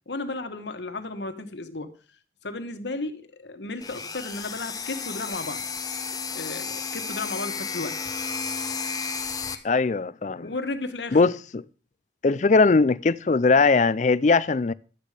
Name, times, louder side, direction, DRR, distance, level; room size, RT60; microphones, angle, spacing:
voice 1, 0.1-2.0 2.4-5.6 6.3-8.0 10.4-11.2, left 2 dB, 85° left, 1.4 m, -34 dB
sound 1, 3.8-9.5, left 5 dB, 20° left, 0.9 m, -32 dB
voice 2, 9.6-10.5 11.1-11.6 12.2-14.7, left 4 dB, 40° left, 0.4 m, -20 dB
12.0 x 8.4 x 5.0 m
head